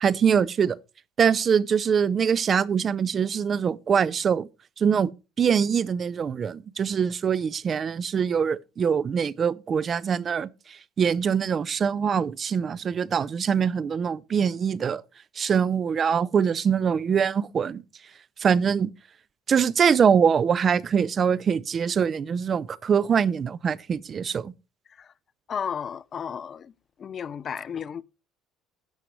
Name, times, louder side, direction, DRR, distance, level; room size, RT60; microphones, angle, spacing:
voice 1, 0.0-0.8 1.2-4.5 4.8-5.1 5.4-15.0 15.4-17.8 18.4-18.9 19.5-24.5, right 7 dB, 35° right, 0.4 m, -23 dB
voice 2, 25.5-26.7 27.0-28.0, left 7 dB, 35° left, 0.5 m, -33 dB
13.5 x 9.4 x 3.1 m
cardioid pair, 115°, 0 cm